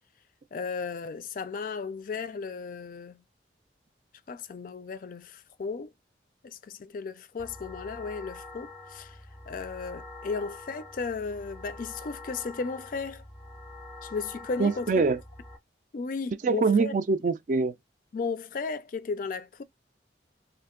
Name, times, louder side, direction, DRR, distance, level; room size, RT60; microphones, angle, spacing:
voice 1, 0.5-3.2 4.3-5.9 6.4-9.2 9.5-13.2 14.0-14.9 15.9-16.9 18.1-19.6, left 4 dB, 50° left, 0.4 m, -35 dB
sound 1, 7.4-15.6, left 2 dB, 5° left, 0.6 m, -45 dB
voice 2, 14.6-15.2 16.4-17.7, right 4 dB, 45° right, 0.4 m, -24 dB
2.7 x 2.5 x 3.6 m
head